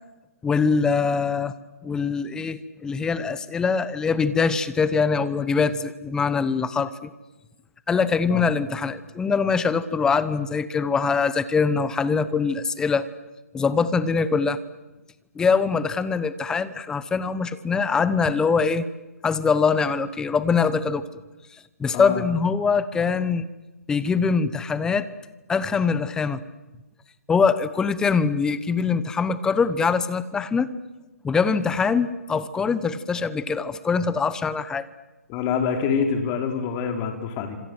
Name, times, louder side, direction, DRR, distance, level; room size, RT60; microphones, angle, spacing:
voice 1, 0.4-1.5 1.8-7.1 7.9-13.1 13.5-14.6 15.3-18.8 19.2-21.0 21.8-23.5 23.9-25.1 25.5-26.4 27.3-30.7 31.2-34.9, left 5 dB, 10° left, 15 dB, 1.0 m, -23 dB
voice 2, 21.9-22.3 35.3-37.6, left 6 dB, 25° left, 5 dB, 4.1 m, -26 dB
28.5 x 26.5 x 7.9 m, 1.1 s
hypercardioid pair, 145°, 8 cm